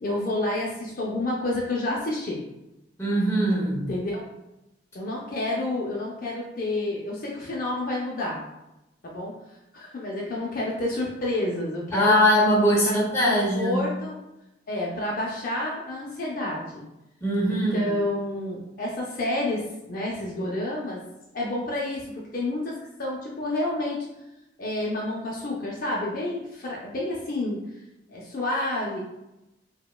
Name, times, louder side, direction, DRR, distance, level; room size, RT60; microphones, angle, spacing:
voice 1, 0.0-2.4 3.9-4.3 4.9-8.4 9.0-9.3 9.7-12.2 12.8-14.2 14.7-16.8 17.5-21.0 21.3-24.1 24.6-27.6 28.1-29.0, left 1 dB, 50° left, -3 dB, 0.5 m, -29 dB
voice 2, 3.0-3.9 11.9-13.8 17.2-18.0, equal, 15° left, -5 dB, 0.9 m, -21 dB
4.8 x 2.2 x 2.3 m, 0.94 s
head